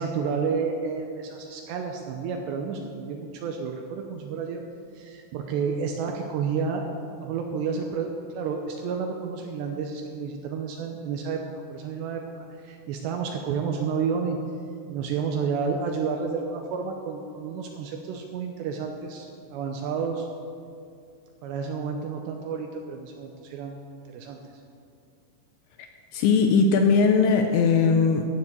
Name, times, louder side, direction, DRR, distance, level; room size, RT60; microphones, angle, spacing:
voice 1, 0.0-4.6 4.9-6.8 7.2-11.4 11.7-12.2 12.6-14.4 14.9-20.3 21.4-23.8 24.1-24.4, right 5 dB, 80° right, 3 dB, 2.6 m, -30 dB
voice 2, 26.1-28.3, left 5 dB, 80° left, 5 dB, 2.7 m, -19 dB
13.0 x 7.1 x 8.0 m, 2.4 s
omnidirectional pair, 5.7 m